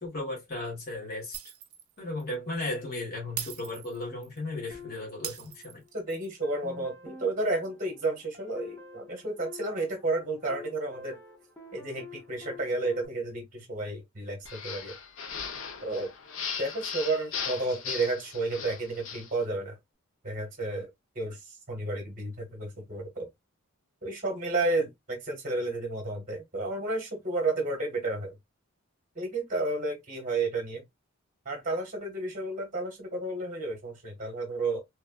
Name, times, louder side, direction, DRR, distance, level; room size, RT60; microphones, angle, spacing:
voice 1, 0.0-1.5 2.0-5.8, left 2 dB, 45° left, 1.3 m, -35 dB
Shatter, 1.3-1.9 2.2-2.4 3.4-4.4 5.2-6.3, right 11 dB, 85° right, 0.5 m, -40 dB
sound 1, 4.7-6.0 6.4-13.1, left 4 dB, 10° left, 0.6 m, -47 dB
voice 2, 5.9-11.2 11.7-14.9 15.8-16.1 16.6-19.8 20.2-20.9 21.1-21.4 21.7-23.3 24.0-28.3 29.1-30.8 31.4-34.8, right 2 dB, 35° right, 1.1 m, -31 dB
sound 2, 14.4-19.3, left 6 dB, 60° left, 0.6 m, -38 dB
3.1 x 2.3 x 2.2 m
head